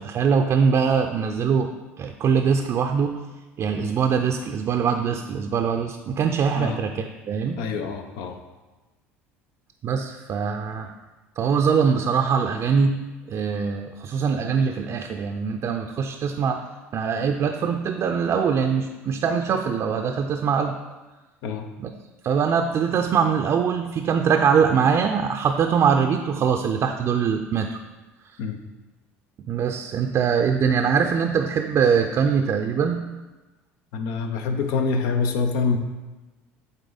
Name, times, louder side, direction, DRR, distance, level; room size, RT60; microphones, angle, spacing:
voice 1, 0.0-1.7 2.0-3.2 3.6-7.6 9.8-10.9 11.4-13.0 13.3-16.6 16.9-20.8 21.8-21.9 22.2-27.8 29.5-33.0, right 6 dB, 45° right, 4 dB, 0.5 m, -22 dB
voice 2, 7.6-8.4 21.4-21.7 28.4-28.6 33.9-35.8, left 4 dB, 70° left, 6 dB, 0.7 m, -25 dB
8.0 x 4.0 x 4.0 m, 1.2 s
hypercardioid pair, 70°, 6 cm